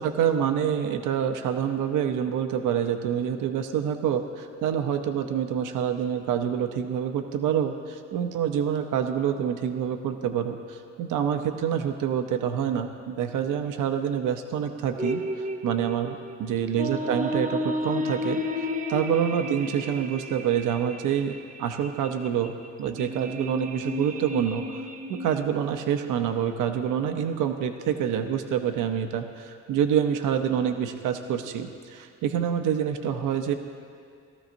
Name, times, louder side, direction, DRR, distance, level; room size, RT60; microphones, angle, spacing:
voice 1, 0.0-22.5 22.8-33.5, right 8 dB, 85° right, 6 dB, 0.7 m, -27 dB
sound 1, 15.0-25.4, left 1 dB, 25° right, 0.8 m, -32 dB
18.5 x 13.5 x 2.6 m, 2.3 s
cardioid pair, 90°, 30 cm